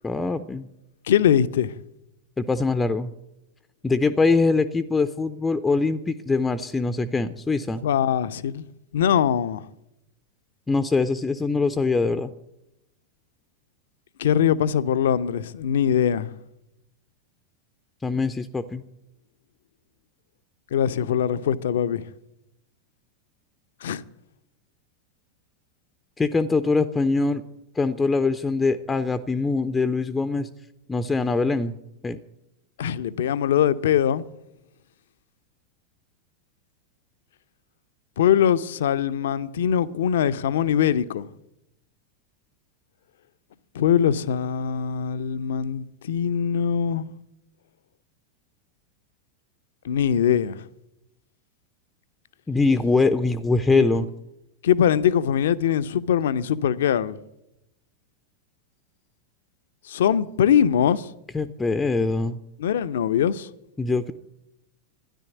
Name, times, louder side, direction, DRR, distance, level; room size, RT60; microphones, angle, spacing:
voice 1, 0.0-0.7 2.4-3.1 3.8-7.8 10.7-12.3 18.0-18.8 26.2-27.4 27.8-30.5 30.9-31.7 32.0-32.2 52.5-54.1 61.3-62.4 63.8-64.1, left 3 dB, 10° left, 0.6 m, -23 dB
voice 2, 1.1-1.7 7.8-8.6 8.9-9.7 14.2-16.3 20.7-22.1 23.8-24.0 32.8-34.3 38.2-41.3 43.7-47.1 49.8-50.6 53.7-53.9 54.6-57.2 59.9-61.1 62.6-63.5, left 9 dB, 60° left, 0.6 m, -22 dB
13.0 x 10.5 x 8.2 m
figure-of-eight pair, 90°, 0 cm